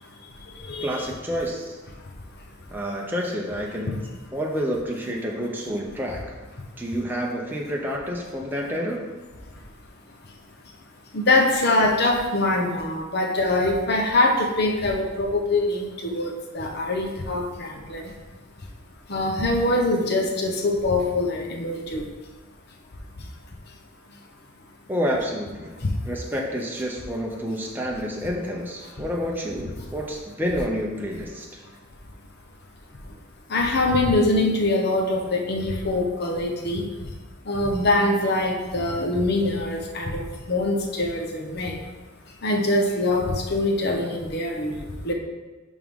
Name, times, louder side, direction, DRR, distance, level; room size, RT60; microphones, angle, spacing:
voice 1, 0.8-1.8 2.7-4.0 4.3-6.4 6.8-9.0 24.9-25.7 26.0-31.5, equal, 10° right, -1 dB, 0.7 m, -29 dB
voice 2, 11.1-18.0 19.1-22.0 25.8-25.9 33.5-36.8 37.5-41.8 42.4-45.1, left 2 dB, 50° left, 2 dB, 0.9 m, -23 dB
11.0 x 3.6 x 3.7 m, 1.2 s
head